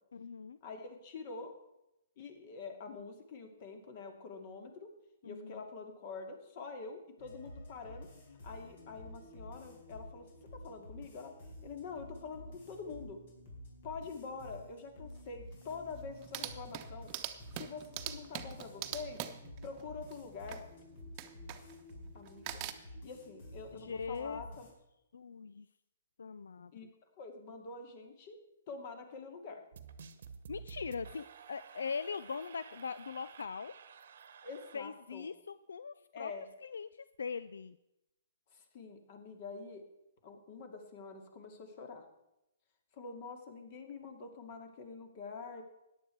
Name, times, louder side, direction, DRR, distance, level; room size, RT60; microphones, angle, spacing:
voice 1, 0.1-0.6 5.2-5.6 23.7-24.4 25.1-25.7 26.2-26.9 30.5-33.7 34.7-36.3 36.6-37.8, left 5 dB, 80° left, 14 dB, 0.4 m, -41 dB
voice 2, 0.6-1.5 2.2-4.9 5.2-8.1 8.4-10.3 10.5-11.3 11.6-13.2 13.8-17.1 17.5-19.2 19.6-20.6 22.1-22.6 23.0-24.7 26.7-26.9 27.2-28.4 28.7-29.6 34.4-35.3 36.1-36.4 38.5-39.8 40.2-42.1 42.9-45.6, left 4 dB, 45° left, 5 dB, 2.3 m, -46 dB
sound 1, 7.2-24.7, left 1 dB, 60° left, 4.4 m, -51 dB
sound 2, 15.1-15.2 15.6-15.7 16.0-20.7 21.2-21.9 22.3-22.7, right 13 dB, 35° right, 0.9 m, -43 dB
sound 3, 29.7-34.8, right 6 dB, 65° right, 1.1 m, -51 dB
14.5 x 10.0 x 4.6 m, 0.88 s
hypercardioid pair, 140°, 0 cm